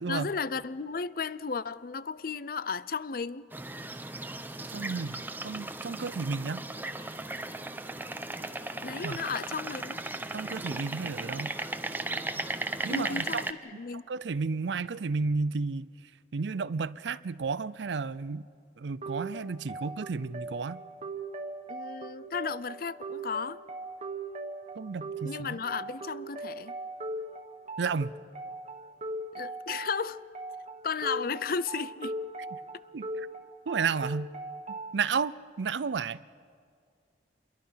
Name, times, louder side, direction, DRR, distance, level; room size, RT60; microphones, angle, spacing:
voice 1, 0.1-3.5 8.8-10.0 12.9-14.0 21.7-23.6 25.2-26.7 29.3-30.2 30.8-32.1 32.7-32.8, left 5 dB, 50° left, 0.5 m, -34 dB
sound 1, 3.5-13.5, right 2 dB, 10° right, 0.8 m, -36 dB
voice 2, 4.7-5.2 5.4-6.6 9.0-9.2 10.3-11.6 12.8-13.4 14.1-15.9 16.3-18.5 18.8-20.8 24.8-25.6 27.8-28.1 32.9-33.3 33.7-34.3 34.9-36.2, right 4 dB, 80° right, 0.5 m, -32 dB
sound 2, 19.0-35.0, right 2 dB, 40° right, 1.5 m, -40 dB
28.0 x 22.5 x 5.7 m
head